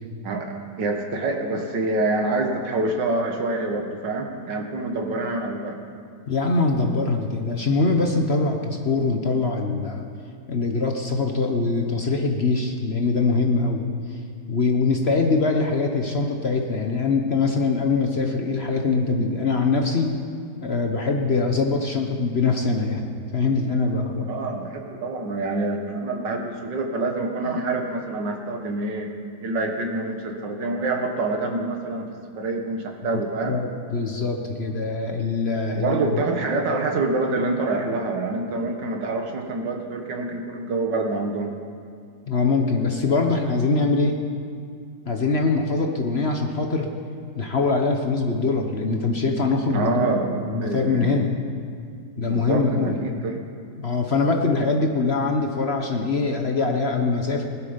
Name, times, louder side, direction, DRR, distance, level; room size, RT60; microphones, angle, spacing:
voice 1, 0.2-5.8 24.3-29.1 29.4-32.1 32.4-33.6 35.7-41.5 49.7-51.2 52.3-53.4, right 2 dB, 80° right, 3 dB, 2.1 m, -26 dB
voice 2, 6.3-10.0 10.5-13.8 14.5-20.1 20.6-24.3 27.5-27.6 33.1-36.2 42.3-44.2 45.1-46.9 47.4-51.3 52.2-53.0 53.8-57.4, left 3 dB, 45° left, 3 dB, 1.0 m, -23 dB
20.0 x 11.5 x 5.2 m, 2.3 s
omnidirectional pair, 1.9 m